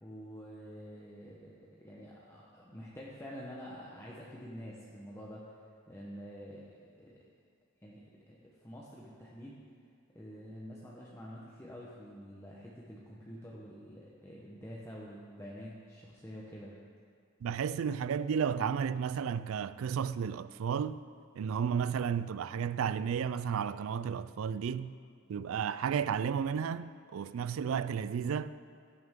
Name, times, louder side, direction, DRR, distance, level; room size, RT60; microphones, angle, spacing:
voice 1, 0.0-5.5 5.9-6.7 6.9-7.2 7.8-9.6 10.1-16.7, equal, 10° left, 0.9 m, -47 dB
voice 2, 17.4-21.0 21.4-24.9 25.3-28.5, right 7 dB, 70° right, 0.3 m, -33 dB
14.5 x 9.5 x 3.7 m
head